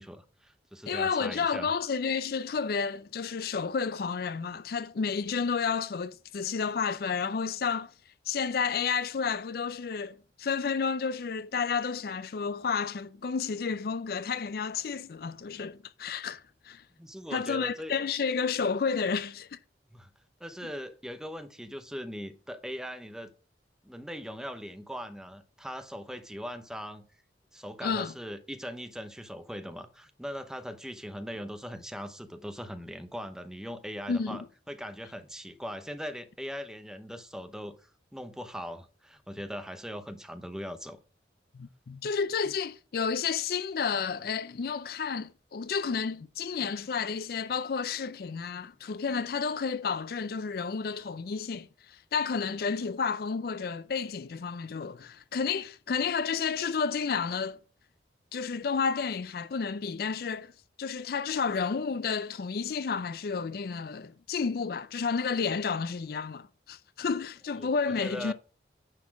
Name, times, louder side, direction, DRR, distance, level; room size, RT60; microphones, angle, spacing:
voice 1, 0.0-1.7 17.0-17.9 19.9-20.1 20.4-23.3 23.8-27.0 27.5-41.0 67.6-67.7 68.0-68.3, equal, 5° right, 0.8 m, -40 dB
voice 2, 0.9-7.9 8.3-16.8 17.3-19.6 27.8-28.1 34.1-34.5 41.5-57.6 58.3-60.5 60.8-68.3, left 5 dB, 55° left, 0.4 m, -31 dB
9.6 x 4.3 x 5.8 m
head